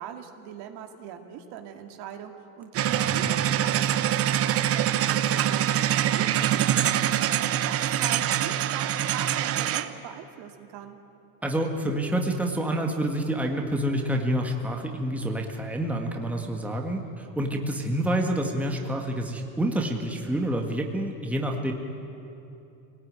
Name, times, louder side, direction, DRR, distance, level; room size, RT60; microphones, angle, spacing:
voice 1, 0.0-6.8 7.4-11.0, right 9 dB, 55° right, 5 dB, 2.3 m, -41 dB
sound 1, 2.7-9.9, right 11 dB, 30° right, 0.8 m, -24 dB
voice 2, 2.9-3.4 11.4-21.7, right 1 dB, 5° right, 2 dB, 1.8 m, -28 dB
25.0 x 18.5 x 9.6 m, 2.9 s
supercardioid pair, 140°, 48 cm